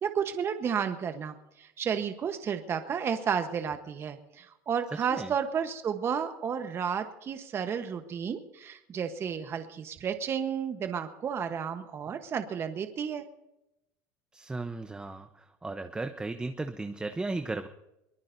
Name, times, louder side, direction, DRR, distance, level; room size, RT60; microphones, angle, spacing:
voice 1, 0.0-13.3, right 7 dB, 35° right, 8 dB, 1.1 m, -32 dB
voice 2, 14.3-17.7, right 3 dB, 10° right, 7 dB, 0.8 m, -35 dB
22.5 x 19.5 x 2.7 m, 0.89 s
supercardioid pair, 120°, 8 cm